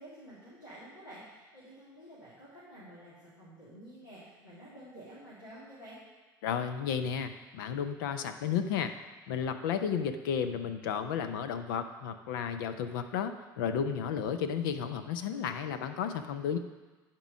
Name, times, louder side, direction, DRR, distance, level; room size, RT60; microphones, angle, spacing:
voice 1, 0.0-6.0, right 1 dB, 85° left, -9 dB, 2.1 m, -50 dB
voice 2, 6.4-8.9 9.3-16.6, left 7 dB, 70° left, 9 dB, 0.6 m, -33 dB
10.5 x 4.6 x 6.2 m, 1.3 s
hypercardioid pair, 65°, 11 cm